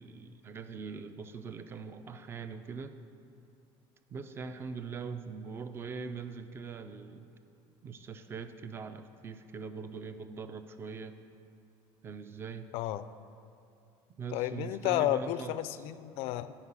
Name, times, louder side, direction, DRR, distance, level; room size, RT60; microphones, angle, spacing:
voice 1, 0.0-3.0 4.1-7.3 7.8-11.2 12.0-12.7 14.2-15.6, right 5 dB, 20° right, 10 dB, 0.4 m, -42 dB
voice 2, 12.7-13.0 14.3-16.5, left 13 dB, 60° left, 14 dB, 0.4 m, -32 dB
9.8 x 5.4 x 7.3 m, 2.5 s
cardioid pair, 160°, 11 cm